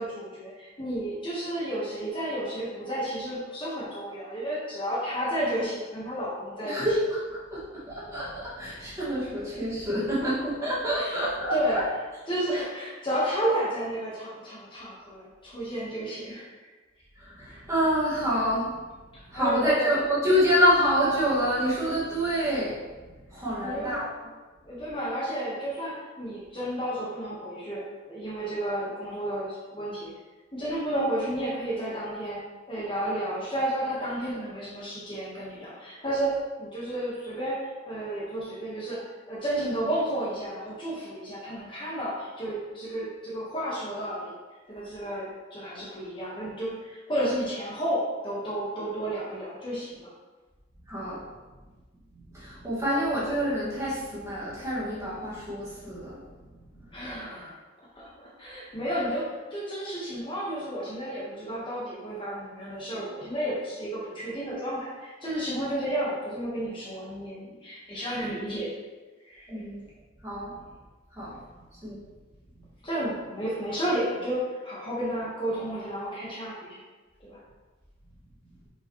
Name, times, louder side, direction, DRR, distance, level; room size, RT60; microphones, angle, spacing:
voice 1, 0.0-6.9 10.6-11.2 11.5-11.8 12.3-16.7 17.5-17.6 19.1-19.9 23.6-24.0 24.6-30.1 30.5-32.4 32.7-39.0 39.3-44.3 44.7-50.1 56.9-57.5 57.9-58.1 58.4-68.7 69.2-69.5 72.8-76.8 77.2-77.4, right 1 dB, 25° left, -7 dB, 1.3 m, -32 dB
voice 2, 6.6-11.8 17.2-18.8 19.3-24.1 50.9-51.2 52.1-56.5 56.7-56.9 69.5-69.8 70.2-70.6 71.1-71.4 71.7-72.0 72.6-72.7, equal, 15° right, -8 dB, 1.8 m, -27 dB
6.1 x 5.0 x 3.1 m, 1.3 s
head